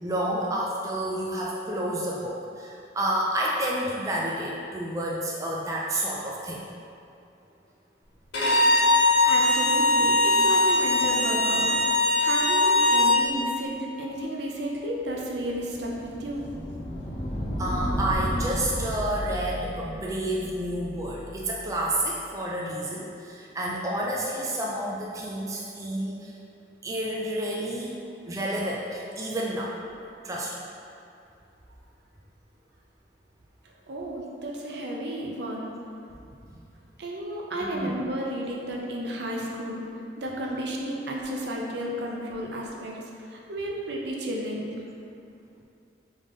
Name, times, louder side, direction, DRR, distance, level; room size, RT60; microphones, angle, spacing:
voice 1, 0.0-6.7 17.6-26.3 26.8-28.0 28.3-29.7 30.2-30.6 36.5-36.6 37.6-37.9, right 1 dB, 20° right, -4 dB, 0.3 m, -30 dB
Bowed string instrument, 8.3-13.2, left 2 dB, 75° left, 1.3 m, -21 dB
voice 2, 9.2-11.7 12.2-16.5 33.9-35.7 37.0-39.8 40.2-43.0 43.3-44.7, right 1 dB, 70° right, -2 dB, 0.6 m, -32 dB
sound 1, 15.0-21.9, equal, 35° left, 0.6 m, -33 dB
3.6 x 3.5 x 3.8 m, 2.6 s
head